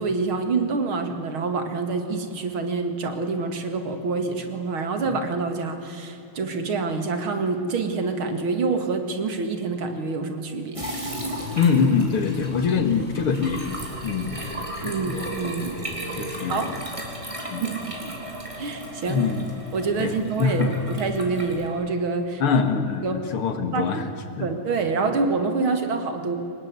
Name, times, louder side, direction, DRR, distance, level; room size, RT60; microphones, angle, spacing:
voice 1, 0.0-10.8 14.8-15.8 16.5-16.7 17.6-17.7 18.0-18.1 18.6-19.2 19.7-22.4 23.0-23.2 23.7-24.1 24.4-26.4, right 4 dB, 75° right, 7 dB, 2.9 m, -26 dB
sound 1, 10.7-21.7, right 1 dB, 15° right, 3.7 m, -35 dB
voice 2, 11.6-13.8 14.0-14.4 14.8-15.1 16.2-16.7 17.5-17.7 19.1-19.5 20.0-20.8 22.4-24.0 24.4-24.5 25.0-25.1, left 5 dB, 85° left, 8 dB, 2.7 m, -24 dB
24.0 x 20.0 x 9.7 m, 2.8 s
omnidirectional pair, 2.3 m